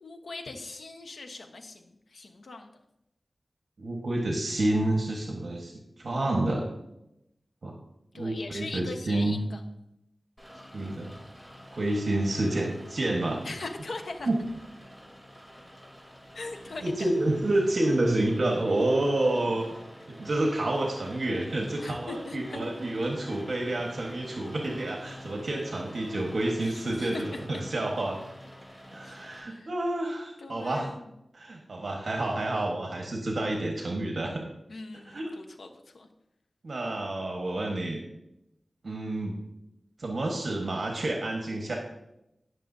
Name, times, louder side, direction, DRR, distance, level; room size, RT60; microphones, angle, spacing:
voice 1, 0.0-2.7 8.1-9.6 13.4-14.3 16.3-17.1 21.8-22.6 26.6-27.4 29.0-29.7 30.4-31.1 34.7-36.1, left 3 dB, 85° left, 5 dB, 1.1 m, -41 dB
voice 2, 3.8-6.7 7.6-7.7 8.1-9.4 10.7-11.1 11.7-13.4 14.2-14.4 16.8-19.7 20.1-28.2 28.9-30.9 31.3-34.4 35.1-35.3 36.6-38.0 38.8-39.4 40.0-41.8, right 1 dB, 65° right, 0 dB, 1.4 m, -29 dB
Rain, 10.4-29.4, equal, 10° left, 3.4 m, -48 dB
18.5 x 6.7 x 2.7 m, 0.86 s
wide cardioid pair, 75°, 0 cm